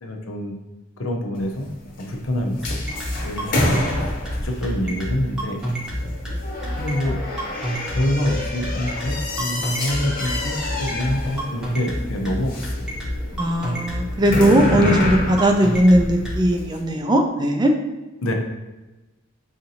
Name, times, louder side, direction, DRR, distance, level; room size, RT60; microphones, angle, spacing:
voice 1, 0.0-0.6 1.0-1.7 2.0-5.6 6.7-7.2 7.9-12.9 14.7-15.2 18.2-18.3, left 1 dB, 80° left, 2 dB, 0.6 m, -26 dB
sound 1, 1.4-16.8, left 1 dB, 40° left, 0.9 m, -29 dB
sound 2, 2.6-16.4, equal, 5° right, 0.8 m, -28 dB
voice 2, 13.4-17.7, right 1 dB, 20° right, 4 dB, 0.3 m, -18 dB
4.9 x 2.6 x 2.8 m, 1.1 s
head